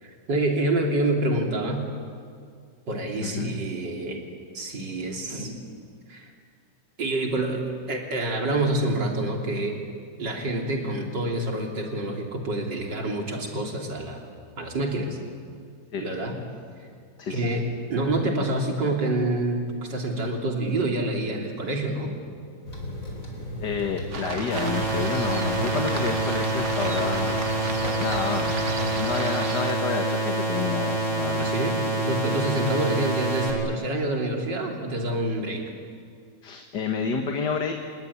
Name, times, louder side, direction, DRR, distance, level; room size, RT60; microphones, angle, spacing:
voice 1, 0.0-1.9 2.9-4.2 4.5-5.7 6.1-6.3 7.0-9.8 10.2-14.3 14.6-15.2 16.0-16.4 17.3-22.1 31.4-35.7, right 1 dB, 75° right, 2 dB, 3.9 m, -27 dB
voice 2, 3.2-3.6 15.9-16.0 17.2-17.5 23.6-28.6 29.0-31.5 36.4-37.7, left 5 dB, 70° left, 4 dB, 2.2 m, -30 dB
sound 1, 22.7-29.2, left 1 dB, 45° left, 5.1 m, -35 dB
sound 2, 24.1-29.7, right 5 dB, 45° right, 1.5 m, -35 dB
sound 3, 24.5-33.5, right 2 dB, 10° left, 6.3 m, -27 dB
28.0 x 19.5 x 9.8 m, 2.2 s
omnidirectional pair, 1.9 m